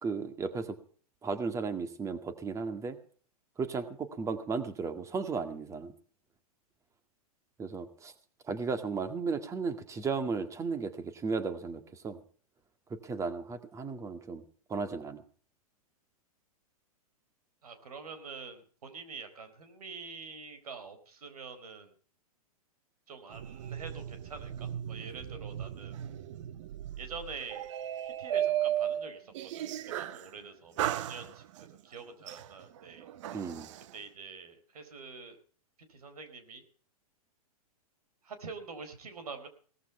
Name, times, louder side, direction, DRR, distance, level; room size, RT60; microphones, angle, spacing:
voice 1, 0.0-0.8 1.2-3.0 3.6-5.9 7.6-8.1 8.4-12.2 12.9-14.4 14.7-15.2 33.3-33.7, right 4 dB, 15° right, 10 dB, 2.0 m, -35 dB
voice 2, 17.6-21.9 23.1-26.0 27.0-27.7 28.0-33.0 33.9-35.4 35.9-36.6 38.2-39.5, right 5 dB, 75° right, 9 dB, 4.3 m, -46 dB
sound 1, 23.3-30.3 30.8-31.7 32.3-33.9, right 11 dB, 55° right, 1.0 m, -36 dB
18.0 x 14.0 x 4.5 m, 0.43 s
hypercardioid pair, 130°, 19 cm